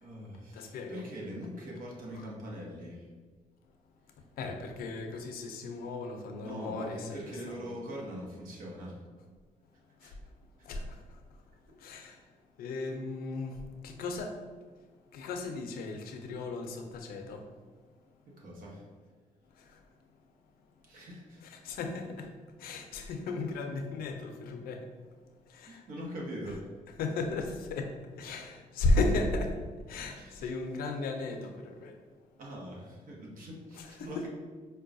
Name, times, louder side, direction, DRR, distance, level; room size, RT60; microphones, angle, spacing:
voice 1, 0.0-3.1 6.4-9.0 10.0-10.1 18.4-18.8 20.9-21.4 25.7-26.7 30.1-30.5 32.4-34.3, equal, 65° right, -2 dB, 0.9 m, -42 dB
voice 2, 0.5-1.0 4.4-7.8 10.0-10.1 10.6-11.0 11.8-12.2 12.6-14.4 15.1-17.4 19.6-19.8 21.4-22.3 22.6-24.9 25.5-25.8 27.0-27.9 28.2-29.6 29.9-31.9 33.7-34.3, left 2 dB, 85° left, 4 dB, 0.5 m, -35 dB
4.6 x 2.2 x 2.5 m, 1.4 s
cardioid pair, 85°, 15 cm